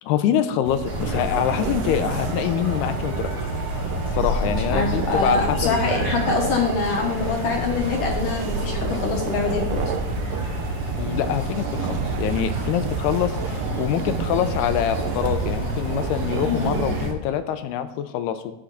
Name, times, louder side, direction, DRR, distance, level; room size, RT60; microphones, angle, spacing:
voice 1, 0.0-3.5 4.1-6.4 11.0-18.5, left 10 dB, 90° left, 10 dB, 2.7 m, -25 dB
sound 1, 0.6-17.1, right 8 dB, 80° right, 2.1 m, -30 dB
sound 2, 0.8-17.1, left 1 dB, 25° right, 2.6 m, -29 dB
voice 2, 4.7-9.9 16.5-16.8, left 4 dB, 65° left, 1 dB, 2.4 m, -24 dB
14.5 x 10.0 x 3.9 m, 0.92 s
omnidirectional pair, 4.6 m